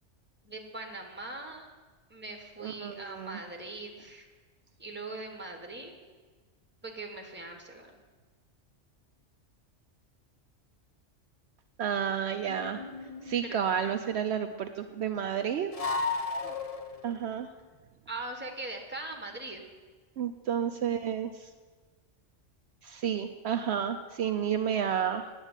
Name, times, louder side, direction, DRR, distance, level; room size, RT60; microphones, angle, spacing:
voice 1, 0.4-1.7 2.1-4.3 4.8-5.9 6.8-8.0 13.4-13.6 18.1-19.6, right 2 dB, 10° right, 3 dB, 1.4 m, -41 dB
voice 2, 2.6-3.4 11.8-12.8 13.2-15.7 16.4-16.5 17.0-17.5 20.2-21.5 22.8-25.3, right 8 dB, 70° right, 6 dB, 0.8 m, -31 dB
sound 1, 12.5-13.5 15.7-17.2, left 3 dB, 35° left, 0.8 m, -34 dB
9.9 x 8.1 x 8.0 m, 1.4 s
omnidirectional pair, 1.2 m